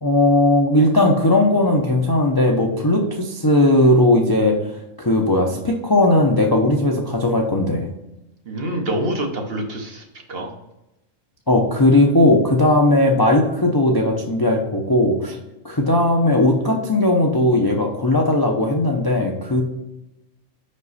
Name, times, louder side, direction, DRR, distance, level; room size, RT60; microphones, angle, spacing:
voice 1, 0.0-7.9 11.5-15.4 15.6-19.6, left 1 dB, 25° left, 1 dB, 0.5 m, -17 dB
voice 2, 8.5-10.5, right 1 dB, 50° right, 3 dB, 1.1 m, -26 dB
5.3 x 5.2 x 4.1 m, 0.92 s
omnidirectional pair, 1.4 m